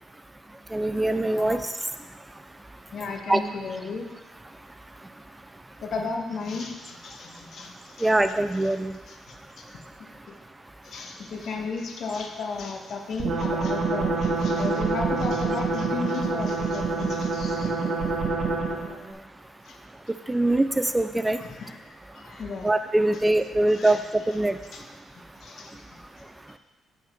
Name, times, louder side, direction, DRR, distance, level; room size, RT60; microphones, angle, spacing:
voice 1, 0.7-1.7 3.3-3.4 8.0-9.0 20.3-21.4 22.6-24.6, right 1 dB, 15° right, 10 dB, 0.4 m, -23 dB
voice 2, 2.9-4.1 5.8-8.1 9.1-9.6 10.0-10.3 10.8-18.1 19.6-19.8 21.4-21.8 22.1-22.7 23.7-24.0 24.7-24.8 25.4-26.0, left 4 dB, 60° left, 2 dB, 1.3 m, -35 dB
sound 1, 13.2-19.0, right 3 dB, 65° right, 1.3 m, -26 dB
8.1 x 7.4 x 4.5 m, 1.2 s
cardioid pair, 90°, 0 cm